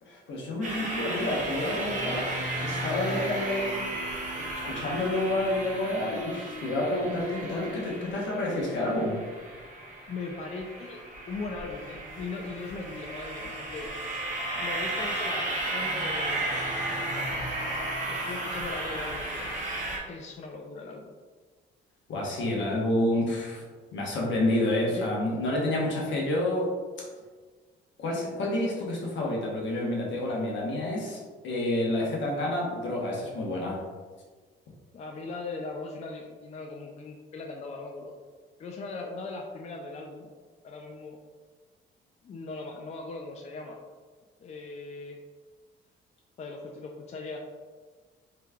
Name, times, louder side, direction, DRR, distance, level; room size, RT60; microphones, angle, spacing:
voice 1, 0.0-3.9 4.6-9.2 18.2-18.3 22.1-23.6 23.9-26.7 28.0-31.2 31.4-33.8, left 1 dB, 70° left, -3 dB, 1.1 m, -29 dB
sound 1, 0.6-20.0, right 2 dB, 40° right, 0.9 m, -34 dB
voice 2, 10.1-11.0 11.3-13.9 14.5-17.5 18.1-19.5 20.1-21.1 22.3-22.7 24.9-25.1 34.9-38.1 38.6-40.3 40.6-41.2 42.2-43.8 44.4-45.2 46.4-47.4, left 3 dB, 35° left, 1 dB, 0.4 m, -39 dB
3.3 x 3.2 x 2.3 m, 1.4 s
cardioid pair, 90°, 20 cm